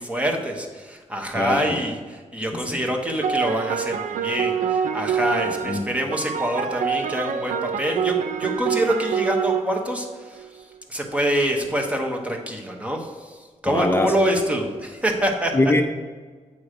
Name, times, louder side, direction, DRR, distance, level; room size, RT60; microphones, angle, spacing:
voice 1, 0.0-10.5 10.9-15.6, equal, 10° right, 2 dB, 0.9 m, -26 dB
voice 2, 1.3-1.8 2.5-2.8 5.7-5.9 13.7-14.1 15.5-15.8, left 2 dB, 20° left, 4 dB, 0.4 m, -22 dB
sound 1, 3.2-10.6, right 8 dB, 80° right, 0.4 m, -26 dB
8.5 x 3.1 x 6.4 m, 1.4 s
wide cardioid pair, 175°, 13 cm